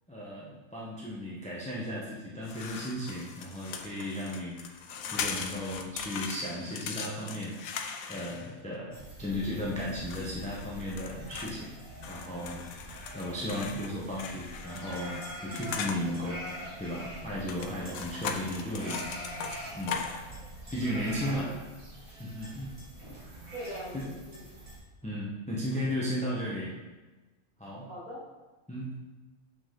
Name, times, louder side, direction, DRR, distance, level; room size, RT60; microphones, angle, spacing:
voice 1, 0.1-4.6 5.1-15.2 15.4-16.4 16.8-19.0 19.7-20.0 20.7-21.5 22.1-22.7 23.1-23.5 23.9-24.0 25.0-26.8 27.6-27.9 28.7-28.9, left 1 dB, 5° left, -6 dB, 1.0 m, -35 dB
sound 1, 2.4-8.7 9.9-11.6 12.0-16.0 17.4-20.3, left 6 dB, 85° left, 1.1 m, -39 dB
sound 2, 8.9-24.8, right 1 dB, 85° right, 2.6 m, -44 dB
voice 2, 21.2-21.5 23.5-24.4 26.2-26.4 27.9-28.2, equal, 30° right, -6 dB, 2.1 m, -42 dB
7.1 x 6.0 x 3.8 m, 1.2 s
omnidirectional pair, 1.4 m